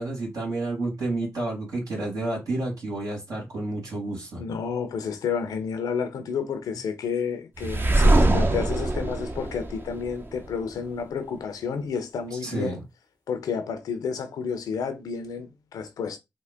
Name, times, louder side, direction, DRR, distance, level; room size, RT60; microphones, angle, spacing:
voice 1, 0.0-4.4 12.4-12.8, right 2 dB, 75° right, 1.9 m, -30 dB
voice 2, 4.4-12.8 13.3-16.2, left 6 dB, 85° left, 0.5 m, -30 dB
sound 1, 7.6-10.6, right 2 dB, 35° right, 0.6 m, -22 dB
3.5 x 2.1 x 3.5 m
supercardioid pair, 40°, 6 cm